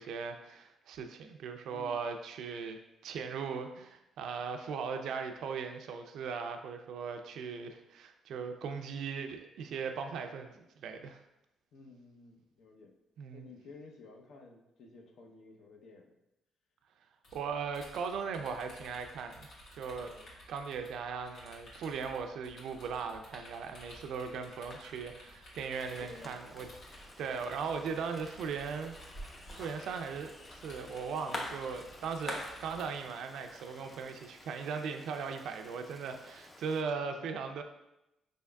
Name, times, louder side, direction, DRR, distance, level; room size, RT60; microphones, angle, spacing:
voice 1, 0.0-2.8 3.0-11.2 13.2-13.5 17.3-19.5 19.8-20.1 20.5-26.7 26.9-29.0 29.5-37.6, right 5 dB, 75° right, 6 dB, 0.4 m, -38 dB
voice 2, 1.7-2.0 11.7-12.9 13.3-16.1 19.9-20.3 26.0-26.4, left 3 dB, 70° left, 2 dB, 0.7 m, -53 dB
sound 1, 17.2-33.0, equal, 90° left, 1.4 m, -53 dB
sound 2, 23.7-34.0, left 1 dB, 40° left, 1.0 m, -48 dB
Rain, 25.7-36.8, left 2 dB, 20° left, 0.5 m, -56 dB
5.1 x 3.5 x 2.2 m, 0.88 s
cardioid pair, 90°, 0 cm